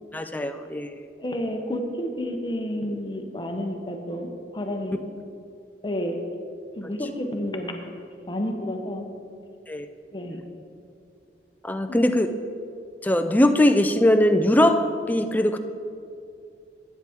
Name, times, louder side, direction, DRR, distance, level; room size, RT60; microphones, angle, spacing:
voice 1, 0.1-0.9 9.7-9.9 11.6-12.3 13.0-15.6, left 1 dB, 10° left, 7 dB, 0.4 m, -20 dB
voice 2, 1.2-5.0 5.8-6.3 6.7-7.9 8.3-9.1 10.1-10.4 11.9-12.1, left 1 dB, 25° left, 4 dB, 0.8 m, -30 dB
10.5 x 9.1 x 3.6 m, 2.4 s
head